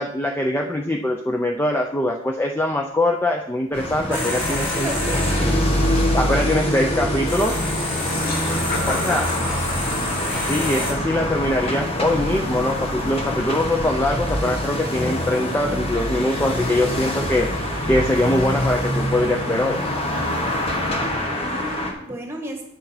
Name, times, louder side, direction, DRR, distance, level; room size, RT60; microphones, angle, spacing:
voice 1, 0.0-4.9 6.1-7.6 8.8-9.3 10.5-17.5 17.9-19.8, left 1 dB, 10° left, 2 dB, 0.4 m, -22 dB
sound 1, 3.7-21.9, left 1 dB, 30° left, 1.2 m, -25 dB
sound 2, 4.1-10.9, left 2 dB, 75° left, 3.7 m, -30 dB
voice 2, 4.1-5.5 8.4-9.5 21.3-22.7, right 1 dB, 10° right, 2 dB, 1.4 m, -34 dB
Laughter, 7.4-7.5 7.7-11.4, left 2 dB, 50° left, 1.3 m, -33 dB
9.0 x 6.2 x 4.2 m, 0.79 s
head